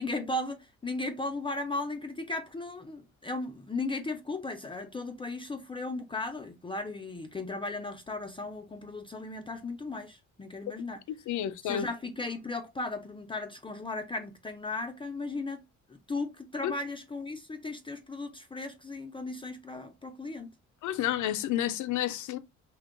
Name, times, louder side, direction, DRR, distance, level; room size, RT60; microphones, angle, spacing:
voice 1, 0.0-11.0 11.6-20.5, left 2 dB, 15° left, 0.4 m, -36 dB
voice 2, 11.1-11.9 16.6-16.7 20.8-22.4, left 11 dB, 75° left, 0.5 m, -30 dB
2.8 x 2.2 x 3.7 m
cardioid pair, 90°, 30 cm